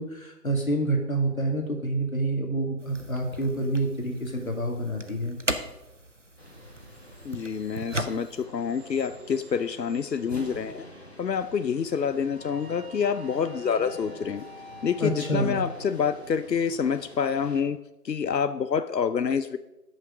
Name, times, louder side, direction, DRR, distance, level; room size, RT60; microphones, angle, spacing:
voice 1, 0.0-5.4 15.0-15.6, right 1 dB, 55° left, 2 dB, 2.0 m, -28 dB
sound 1, 2.8-8.5, right 1 dB, 50° right, 0.6 m, -37 dB
sound 2, 6.4-17.6, equal, 40° left, 1.4 m, -46 dB
voice 2, 7.2-10.8 11.2-14.4 14.8-17.8 18.0-19.6, left 6 dB, 85° left, 12 dB, 0.7 m, -27 dB
10.0 x 6.4 x 5.1 m, 0.96 s
figure-of-eight pair, 170°, 49 cm